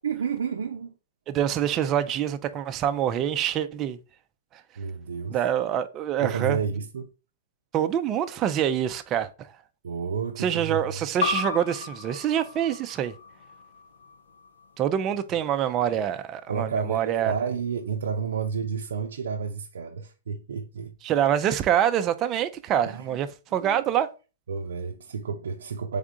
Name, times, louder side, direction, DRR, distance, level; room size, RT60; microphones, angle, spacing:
voice 1, 0.0-0.9 4.8-5.4 6.2-7.1 9.8-11.1 16.5-21.0 22.9-23.2 23.6-23.8 24.5-26.0, right 6 dB, 80° right, 0.5 m, -31 dB
voice 2, 1.3-4.0 4.5-4.6 5.3-6.6 7.7-9.5 10.4-13.1 14.8-17.3 21.0-24.1, right 10 dB, 25° right, 0.4 m, -25 dB
sound 1, 11.2-16.4, left 5 dB, 90° left, 0.7 m, -35 dB
3.6 x 3.5 x 3.7 m
hypercardioid pair, 140°, 0 cm